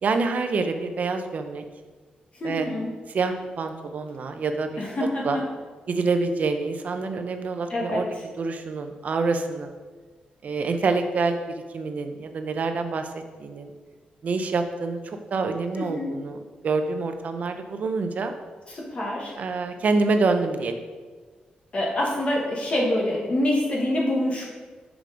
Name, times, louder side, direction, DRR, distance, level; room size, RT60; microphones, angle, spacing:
voice 1, 0.0-1.6 2.4-2.7 3.1-4.8 5.2-5.4 5.9-8.1 8.4-9.7 10.4-11.4 11.7-13.7 14.2-16.4 16.6-18.3 19.4-20.8, right 3 dB, 55° right, 7 dB, 0.7 m, -26 dB
voice 2, 2.4-2.9 4.8-5.4 7.7-8.2 15.8-16.1 18.7-19.3 21.7-24.4, left 1 dB, 40° left, -3 dB, 1.7 m, -26 dB
6.1 x 5.1 x 5.1 m, 1.4 s
wide cardioid pair, 115°, 3 cm